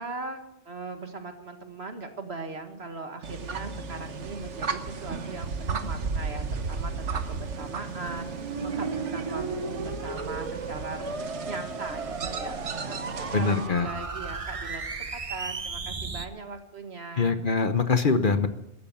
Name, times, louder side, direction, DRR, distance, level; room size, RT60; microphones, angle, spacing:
voice 1, 0.0-8.3 8.6-12.5 12.9-17.4, right 3 dB, 65° right, 6 dB, 2.0 m, -39 dB
sound 1, 3.2-13.7, right 4 dB, 90° right, 1.5 m, -34 dB
sound 2, 8.1-16.3, right 4 dB, 35° right, 0.8 m, -35 dB
voice 2, 13.3-13.9 17.2-18.5, left 4 dB, 50° left, 10 dB, 1.1 m, -23 dB
14.5 x 13.0 x 7.0 m, 0.89 s
omnidirectional pair, 1.2 m